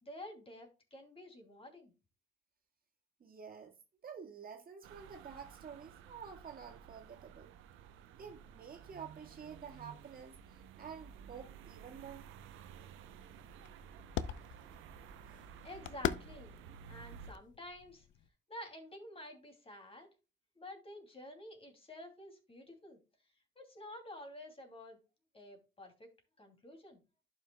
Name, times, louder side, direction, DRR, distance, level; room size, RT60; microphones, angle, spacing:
voice 1, 0.0-1.9 15.6-16.5 16.9-18.1 18.5-20.1 20.5-23.0 23.6-25.0 25.3-26.1 26.4-27.0, left 1 dB, 30° left, 2.7 m, -50 dB
voice 2, 3.2-3.8 4.0-7.5 8.1-12.2, right 7 dB, 45° right, 1.8 m, -50 dB
sound 1, 4.8-17.3, right 7 dB, 90° right, 0.7 m, -54 dB
sound 2, 12.0-18.3, left 10 dB, 75° left, 0.6 m, -43 dB
11.5 x 5.7 x 2.3 m
cardioid pair, 90°, 20 cm